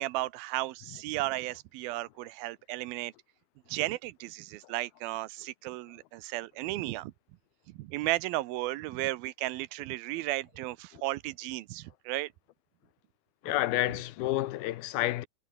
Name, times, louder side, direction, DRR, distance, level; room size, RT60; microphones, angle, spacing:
voice 1, 0.0-3.1 3.7-7.1 7.7-12.3, right 18 dB, 85° right, 2.7 m, -34 dB
voice 2, 13.4-15.3, left 16 dB, 85° left, 2.9 m, -29 dB
omnidirectional pair, 4.2 m